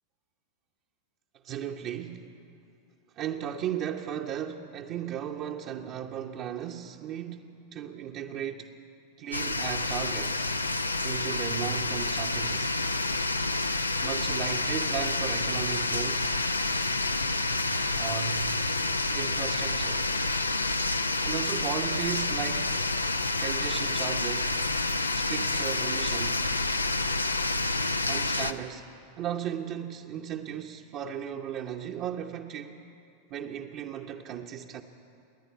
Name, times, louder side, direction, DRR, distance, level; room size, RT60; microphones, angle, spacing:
voice 1, 1.4-2.3 3.2-8.7 9.2-10.5 11.0-12.8 14.0-16.3 18.0-18.5 19.1-20.1 21.2-22.8 23.4-24.6 25.1-26.4 28.0-28.8 29.2-32.8 33.3-34.8, right 9 dB, 40° right, 0 dB, 1.0 m, -36 dB
sound 1, 9.3-28.5, left 2 dB, 80° left, 0.7 m, -28 dB
28.5 x 10.5 x 9.4 m, 2.5 s
figure-of-eight pair, 90°, 0 cm